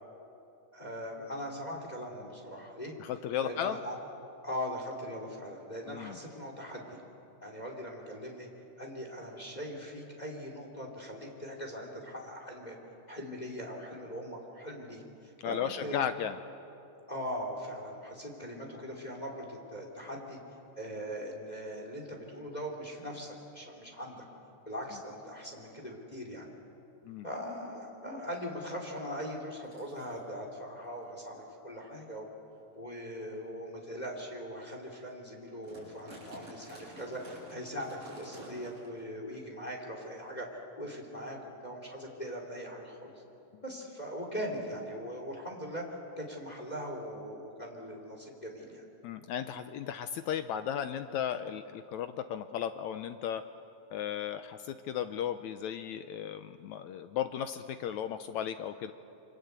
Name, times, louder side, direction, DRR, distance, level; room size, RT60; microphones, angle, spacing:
voice 1, 0.7-2.9 3.4-4.0 4.4-7.0 7.4-8.5 8.8-12.7 13.1-16.0 17.1-20.4 20.8-24.2 24.6-26.5 27.2-32.3 32.7-43.1 43.6-45.8 46.2-48.8, equal, 10° left, 1 dB, 3.0 m, -40 dB
voice 2, 3.0-3.8 5.9-6.2 15.4-16.4 27.1-27.3 49.0-53.4 53.9-58.9, left 9 dB, 75° left, 10 dB, 1.8 m, -35 dB
sound 1, 26.3-26.5 27.1-27.2 27.6-27.8 28.9-29.0 29.6-30.2 31.0-31.1 31.7-31.9 32.5-32.6 33.3-33.5 34.0-34.2 34.6-34.7 34.8-35.1 35.4-39.1 39.3-39.5 40.3-40.4, right 1 dB, 40° right, 9.1 m, -51 dB
28.0 x 25.0 x 8.2 m, 2.8 s
omnidirectional pair, 3.8 m